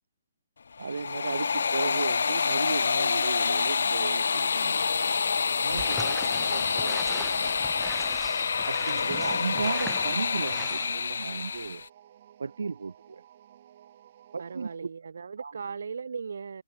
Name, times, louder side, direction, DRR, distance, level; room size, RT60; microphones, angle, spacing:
sound 1, 0.7-11.9, left 5 dB, 75° left, 0.8 m, -27 dB
voice 1, 0.8-4.8 5.6-7.5 8.7-11.8 12.4-13.2 14.3-14.9 15.4-15.6, right 4 dB, 90° right, 1.0 m, -35 dB
sound 2, 3.0-14.9, right 11 dB, 40° right, 5.0 m, -55 dB
sound 3, 5.7-10.9, right 1 dB, ahead, 0.7 m, -41 dB
voice 2, 14.4-16.6, right 5 dB, 75° right, 3.5 m, -37 dB
hypercardioid pair, 165°, 0 cm